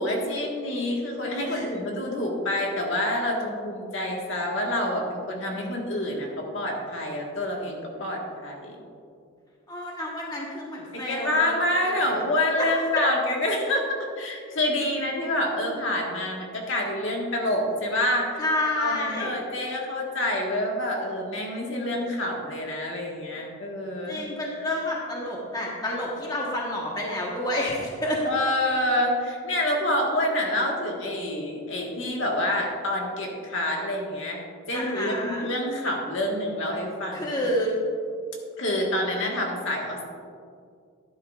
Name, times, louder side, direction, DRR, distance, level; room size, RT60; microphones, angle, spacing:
voice 1, 0.0-8.8 10.9-18.4 18.8-24.2 28.2-37.4 38.6-40.0, left 1 dB, 60° left, -1 dB, 1.6 m, -27 dB
voice 2, 9.7-11.5 11.8-12.0 12.6-13.1 18.4-19.3 23.3-23.4 24.1-28.2 34.7-35.5 37.1-37.7, left 1 dB, 20° left, -3 dB, 1.3 m, -29 dB
12.0 x 10.5 x 2.5 m, 2.3 s
head